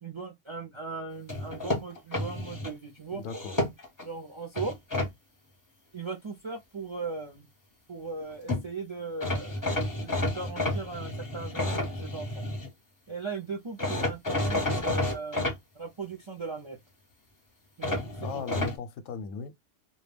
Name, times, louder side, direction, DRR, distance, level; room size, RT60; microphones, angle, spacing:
voice 1, 0.0-3.2 4.0-4.7 5.9-7.5 7.9-9.6 10.0-12.4 13.1-15.4 15.7-16.8 17.8-18.0 18.3-18.4, right 4 dB, 45° right, 0.3 m, -38 dB
sound 1, 1.3-2.7 3.3-4.1 4.5-5.1 8.2-8.3 8.5-8.6 9.2-12.7 13.8-15.6 17.8-18.8, left 1 dB, 20° left, 0.6 m, -30 dB
voice 2, 3.1-3.6 18.2-19.7, left 5 dB, 90° left, 1.0 m, -37 dB
2.2 x 2.1 x 3.4 m
omnidirectional pair, 1.3 m